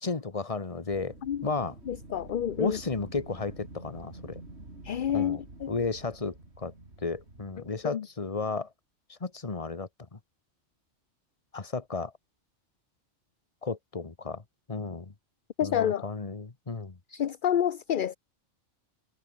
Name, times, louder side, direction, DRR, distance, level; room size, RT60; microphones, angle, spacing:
voice 1, 0.0-1.1 1.4-1.7 2.6-4.4 5.1-5.4 5.7-6.7 7.0-8.7 9.2-10.2 11.5-12.1 13.6-14.4 14.7-15.1 15.6-16.9, left 4 dB, 30° left, 1.4 m, -33 dB
Wind, 0.9-7.9, right 2 dB, 65° right, 4.8 m, -48 dB
voice 2, 1.9-2.8 4.8-5.7 7.9-8.1 15.6-16.1 17.1-18.2, left 9 dB, 50° left, 0.7 m, -28 dB
omnidirectional pair, 1.2 m